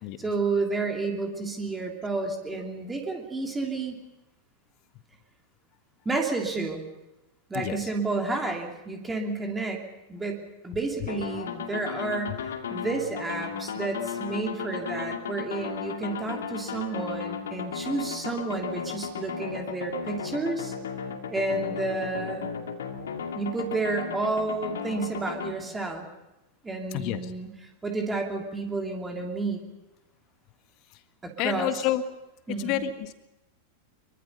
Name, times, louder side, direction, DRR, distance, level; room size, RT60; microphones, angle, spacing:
voice 1, 0.2-4.0 6.0-6.9 7.5-9.8 10.1-12.4 12.7-20.7 21.3-22.5 23.3-26.1 26.6-27.5 27.8-29.6 31.2-31.8 32.5-32.8, right 3 dB, 10° right, 2 dB, 2.9 m, -31 dB
sound 1, 11.1-25.5, left 6 dB, 65° left, 2.3 m, -35 dB
voice 2, 26.9-27.3 31.4-32.0 32.6-33.1, left 12 dB, 40° left, 10 dB, 1.6 m, -29 dB
24.0 x 23.5 x 5.6 m, 0.96 s
figure-of-eight pair, 90°, 0 cm